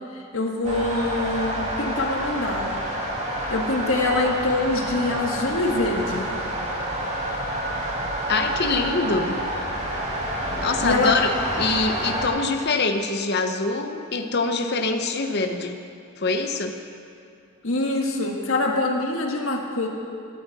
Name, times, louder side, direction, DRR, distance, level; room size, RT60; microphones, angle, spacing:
voice 1, 0.1-2.9 3.5-6.4 10.8-11.1 17.6-19.9, left 2 dB, 65° left, 1 dB, 1.6 m, -24 dB
sound 1, 0.6-12.3, right 1 dB, 30° right, 2.4 m, -28 dB
voice 2, 8.3-9.4 10.6-11.3 11.6-15.8 16.2-16.8, left 3 dB, 50° left, 5 dB, 0.9 m, -24 dB
16.5 x 14.0 x 4.2 m, 2.5 s
head